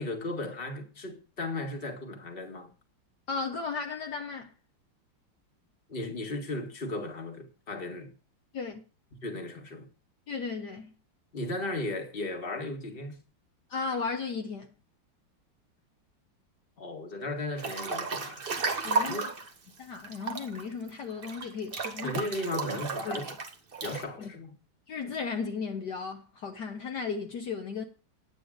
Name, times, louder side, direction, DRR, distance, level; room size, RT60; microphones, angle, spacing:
voice 1, 0.0-2.7 5.9-8.1 9.2-9.9 11.3-13.2 16.8-18.5 19.0-19.2 22.0-23.3 23.8-24.6, left 2 dB, 30° left, 1.9 m, -36 dB
voice 2, 3.3-4.5 8.5-8.8 10.3-10.9 13.7-14.7 18.8-19.3 19.8-22.2 23.0-23.4 24.2-24.3 24.9-27.8, left 5 dB, 60° left, 1.6 m, -35 dB
Breathing / Bathtub (filling or washing) / Splash splatter, 17.6-19.5 20.0-24.0, right 4 dB, 35° right, 1.1 m, -33 dB
10.0 x 9.1 x 5.1 m
omnidirectional pair, 2.1 m